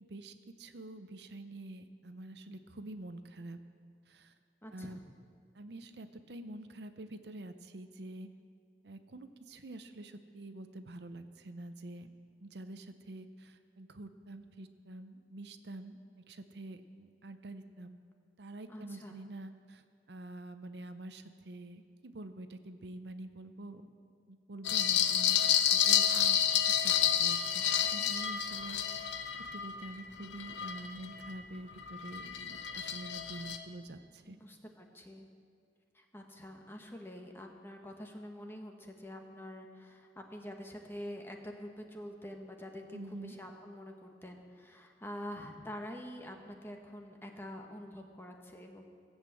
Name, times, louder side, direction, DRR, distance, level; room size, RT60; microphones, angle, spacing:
voice 1, 0.1-3.6 4.1-4.3 4.7-5.0 5.5-8.3 8.8-12.1 12.4-16.0 16.3-18.0 18.4-19.8 20.1-23.8 24.3-26.4 26.8-26.9 27.2-29.1 29.5-34.4 42.9-43.3, right 1 dB, 65° right, 9 dB, 0.7 m, -47 dB
voice 2, 4.6-5.0 18.7-19.2 34.3-35.3 35.9-48.8, equal, 15° left, 3 dB, 1.2 m, -46 dB
sound 1, 24.6-31.3 31.8-33.6, left 9 dB, 80° left, 0.8 m, -30 dB
16.5 x 8.1 x 7.7 m, 2.2 s
head